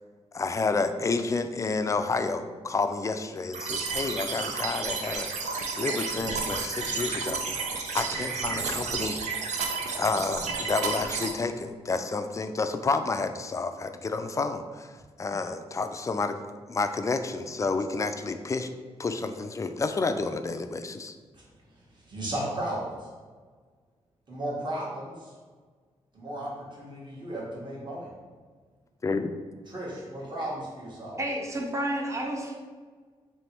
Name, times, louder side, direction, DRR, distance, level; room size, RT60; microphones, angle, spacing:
voice 1, 0.3-9.2 9.9-14.9 15.2-16.4 16.7-18.7 19.0-21.1 29.0-29.3, left 3 dB, 25° left, 9 dB, 0.3 m, -30 dB
sound 1, 3.5-11.3, right 4 dB, 85° right, 0.5 m, -31 dB
voice 2, 21.9-23.1 24.3-25.3 26.1-28.1 29.7-31.2, right 1 dB, 40° right, -4 dB, 1.4 m, -35 dB
voice 3, 31.2-32.5, right 1 dB, 25° right, 0 dB, 0.7 m, -30 dB
3.2 x 3.0 x 4.3 m, 1.5 s
cardioid pair, 70°, 12 cm